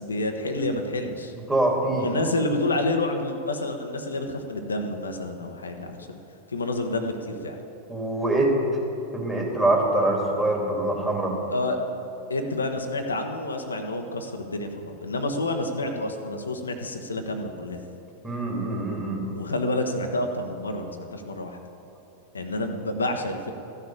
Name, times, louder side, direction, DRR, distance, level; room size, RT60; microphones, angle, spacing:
voice 1, 0.0-1.3 1.9-6.2 6.5-7.6 11.5-11.8 12.3-17.8 19.3-21.6 22.3-23.5, left 2 dB, 75° left, 4 dB, 1.0 m, -29 dB
voice 2, 1.5-2.1 7.9-8.6 9.1-11.4 18.2-19.2, right 2 dB, 10° right, -2 dB, 3.0 m, -24 dB
14.0 x 6.7 x 8.8 m, 2.9 s
figure-of-eight pair, 90°, 0 cm